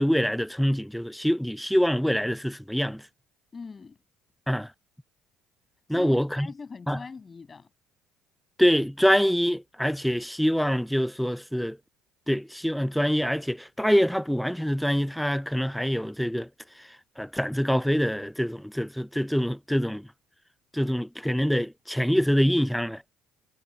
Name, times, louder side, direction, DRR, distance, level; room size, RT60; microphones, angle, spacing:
voice 1, 0.0-3.0 4.5-4.7 5.9-6.5 6.9-7.0 8.6-11.8 12.3-16.5 17.2-20.1 20.7-23.1, equal, ahead, 0.5 m, -25 dB
voice 2, 3.5-4.0 5.9-7.7, left 5 dB, 30° left, 7.6 m, -42 dB
hypercardioid pair, 70°, 0 cm